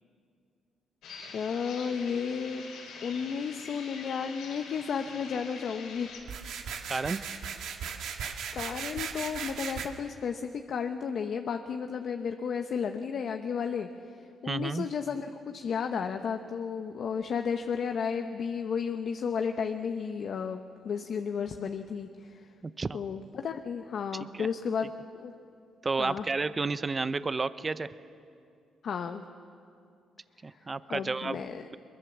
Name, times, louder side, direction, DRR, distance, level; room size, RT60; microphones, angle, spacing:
sound 1, 1.0-6.2, left 4 dB, 85° left, 4.8 m, -45 dB
voice 1, 1.3-2.6 3.0-6.1 6.9-7.0 8.5-13.9 14.4-22.4 22.9-24.9 25.2-25.3 26.0-26.3 28.8-29.2 30.9-31.7, left 6 dB, 60° left, 6 dB, 0.9 m, -33 dB
sound 2, 6.2-9.9, right 7 dB, 80° right, 1.8 m, -37 dB
voice 2, 6.9-7.2 14.4-14.9 22.6-23.0 24.3-24.5 25.8-27.9 30.4-31.4, right 4 dB, 30° right, 14 dB, 0.7 m, -31 dB
22.5 x 22.0 x 7.3 m, 2.4 s
cardioid pair, 90°, 0 cm